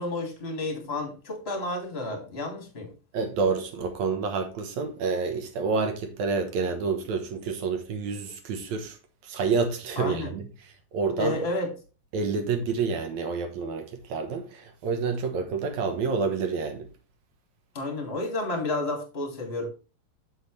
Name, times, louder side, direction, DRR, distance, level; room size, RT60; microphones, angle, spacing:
voice 1, 0.0-2.9 10.0-10.3 11.2-11.7 17.7-19.7, left 2 dB, 20° left, 2.2 m, -31 dB
voice 2, 3.1-9.0 9.2-10.5 10.9-11.4 12.1-16.9, right 4 dB, 65° right, 2.2 m, -28 dB
7.9 x 7.9 x 3.3 m
omnidirectional pair, 4.0 m